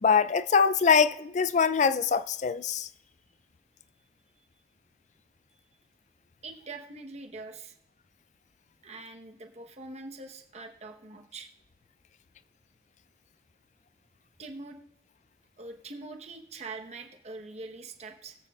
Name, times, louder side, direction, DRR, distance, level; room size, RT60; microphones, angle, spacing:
voice 1, 0.0-2.9, left 6 dB, 40° left, 0.4 m, -23 dB
voice 2, 6.4-7.8 8.8-11.5 14.4-14.8 15.6-18.4, right 3 dB, 35° right, 1.0 m, -43 dB
21.0 x 8.2 x 2.3 m
head